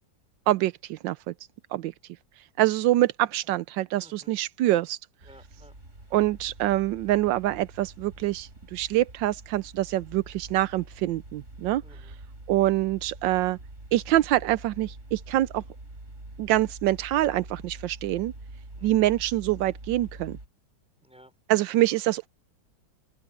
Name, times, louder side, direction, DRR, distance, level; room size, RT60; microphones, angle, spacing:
voice 1, 0.5-1.3 1.7-1.9 2.6-5.0 6.1-11.8 12.5-13.6 13.9-15.6 16.4-18.3 18.8-20.4 21.5-22.3, right 15 dB, 85° right, 1.3 m, -25 dB
voice 2, 4.0-4.8 5.2-5.8 11.8-12.1 18.8-19.1 21.0-21.4, equal, 5° right, 5.8 m, -55 dB
sound 1, 5.2-20.5, right 2 dB, 40° right, 5.4 m, -45 dB
open air
omnidirectional pair, 2.0 m